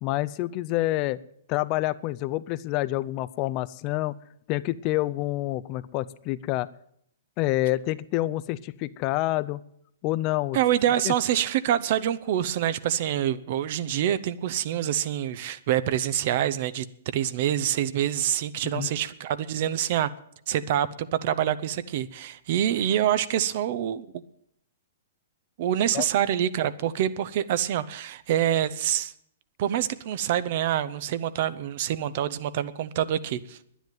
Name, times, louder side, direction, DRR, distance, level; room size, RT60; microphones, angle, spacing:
voice 1, 0.0-1.2 1.5-4.2 4.5-6.7 7.4-9.6 10.0-10.6 11.0-11.1 18.6-18.9 25.9-26.1, left 17 dB, 35° left, 16 dB, 0.5 m, -27 dB
voice 2, 10.5-16.9 17.1-20.1 20.5-24.1 25.6-29.1 29.6-33.6, right 11 dB, 50° right, 14 dB, 0.8 m, -26 dB
10.5 x 10.0 x 9.3 m, 0.71 s
figure-of-eight pair, 115°, 0 cm